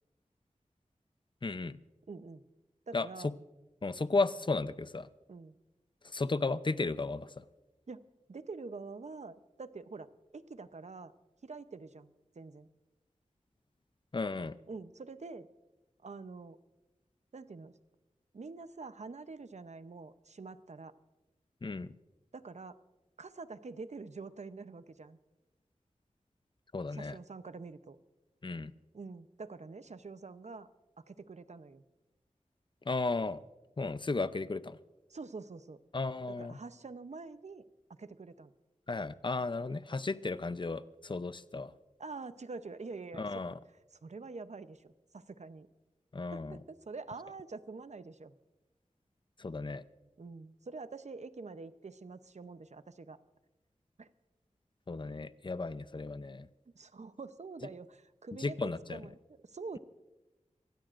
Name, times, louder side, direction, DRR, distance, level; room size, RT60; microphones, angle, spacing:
voice 1, 1.4-1.8 2.9-3.3 3.8-5.1 6.0-7.4 14.1-14.6 21.6-21.9 26.7-27.2 28.4-28.7 32.9-33.4 33.8-34.8 35.9-36.6 38.9-41.7 43.2-43.5 46.1-46.6 49.4-49.8 54.9-56.5 58.4-59.0, left 3 dB, 40° left, 14 dB, 0.6 m, -34 dB
voice 2, 2.1-2.4 2.9-3.3 5.3-5.6 7.9-11.1 11.4-12.7 14.7-15.5 16.0-16.6 17.3-17.7 18.3-20.9 22.3-22.8 23.2-25.2 26.9-28.0 28.9-30.7 31.0-31.8 35.1-35.8 36.4-37.7 38.0-38.5 42.0-43.3 44.0-45.7 46.3-48.4 50.2-53.2 54.0-54.1 56.7-59.8, right 4 dB, 65° right, 12 dB, 0.7 m, -46 dB
24.0 x 16.5 x 2.5 m, 1.1 s
wide cardioid pair, 45°, 13 cm